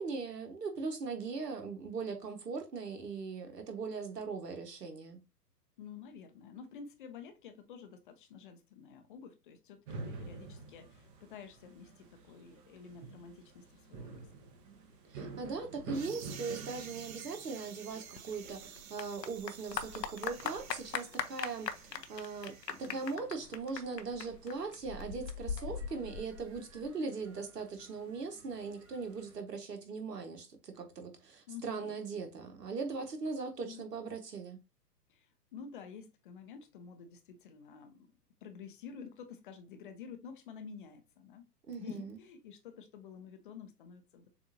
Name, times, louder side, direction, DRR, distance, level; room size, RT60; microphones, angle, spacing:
voice 1, 0.0-5.2 15.1-22.5 22.8-34.6 41.7-42.2, right 4 dB, 75° right, 1.4 m, -40 dB
voice 2, 5.8-14.3 31.5-32.0 33.6-33.9 35.1-38.1 38.4-41.5 41.8-44.3, left 6 dB, 35° left, 0.6 m, -50 dB
sound 1, 9.9-29.4, right 3 dB, 25° right, 0.8 m, -51 dB
sound 2, 15.9-23.2, right 9 dB, 60° right, 0.7 m, -52 dB
Clapping / Applause, 17.9-26.9, left 6 dB, 85° left, 0.7 m, -41 dB
6.8 x 2.6 x 2.7 m
figure-of-eight pair, 120°, 48 cm